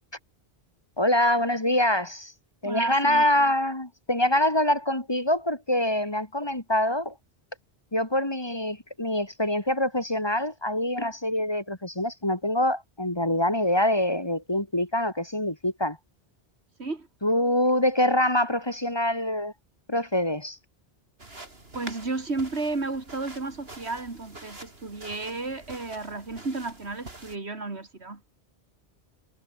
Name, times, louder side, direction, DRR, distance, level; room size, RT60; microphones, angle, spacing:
voice 1, 1.0-2.3 2.6-7.1 7.9-16.0 17.2-19.5 19.9-20.6, left 1 dB, 25° left, 2.3 m, -25 dB
voice 2, 2.6-3.2 11.4-11.5 16.8-17.1 21.7-28.2, right 3 dB, 85° right, 3.2 m, -33 dB
sound 1, 21.2-27.4, right 2 dB, 65° right, 4.4 m, -46 dB
omnidirectional pair, 1.1 m